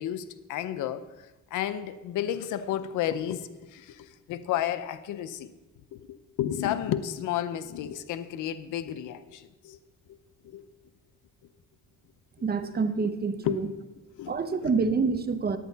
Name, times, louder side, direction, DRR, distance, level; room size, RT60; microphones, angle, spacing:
voice 1, 0.0-5.5 5.9-9.8 10.4-10.7 12.6-12.7 13.4-13.6 14.2-14.4, left 11 dB, 85° left, 13 dB, 0.6 m, -32 dB
voice 2, 12.4-13.7 14.3-15.6, right 4 dB, 30° right, 10 dB, 0.8 m, -27 dB
10.0 x 9.3 x 4.0 m, 1.1 s
cardioid pair, 90°, 30 cm